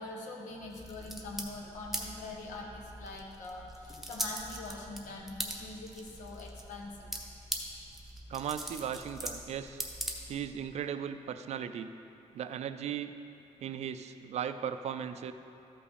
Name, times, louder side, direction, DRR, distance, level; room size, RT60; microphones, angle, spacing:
voice 1, 0.0-7.1, left 2 dB, 85° left, -1 dB, 1.4 m, -43 dB
sound 1, 0.7-10.6, right 1 dB, ahead, 0.8 m, -42 dB
voice 2, 8.3-9.8 10.3-11.9 12.3-13.1 13.6-15.3, right 8 dB, 60° right, 10 dB, 0.4 m, -37 dB
13.0 x 5.7 x 4.1 m, 2.8 s
cardioid pair, 150°, 13 cm